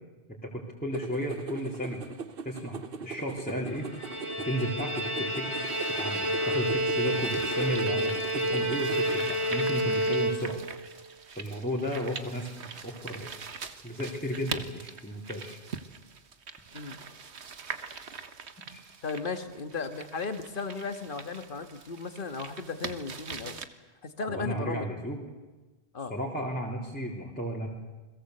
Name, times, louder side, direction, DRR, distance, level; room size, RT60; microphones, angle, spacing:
voice 1, 0.3-2.0 2.4-3.9 4.4-5.6 6.0-10.6 11.3-13.3 13.8-15.6 18.7-18.8 24.3-25.2 26.1-27.7, equal, 10° left, -4 dB, 3.5 m, -34 dB
sound 1, 0.9-9.2, right 6 dB, 60° right, 1.2 m, -41 dB
Bowed string instrument, 3.8-10.8, right 1 dB, 25° left, 3.4 m, -29 dB
sound 2, 5.6-23.7, right 5 dB, 85° right, 1.6 m, -43 dB
voice 2, 19.0-23.6 24.0-24.9 25.9-26.1, left 4 dB, 50° left, 8 dB, 1.9 m, -35 dB
29.0 x 21.5 x 8.0 m, 1.2 s
omnidirectional pair, 1.1 m